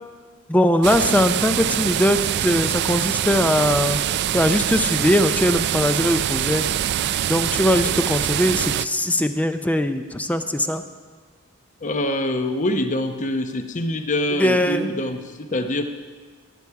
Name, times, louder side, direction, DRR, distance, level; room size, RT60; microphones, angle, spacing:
voice 1, 0.5-4.0 4.3-6.6 7.3-10.8 14.4-14.9, left 1 dB, 5° left, 8 dB, 0.5 m, -20 dB
sound 1, 0.8-8.9, right 11 dB, 55° right, 0.3 m, -24 dB
voice 2, 11.8-15.9, left 1 dB, 35° left, 7 dB, 0.8 m, -25 dB
18.0 x 8.7 x 4.7 m, 1.5 s
head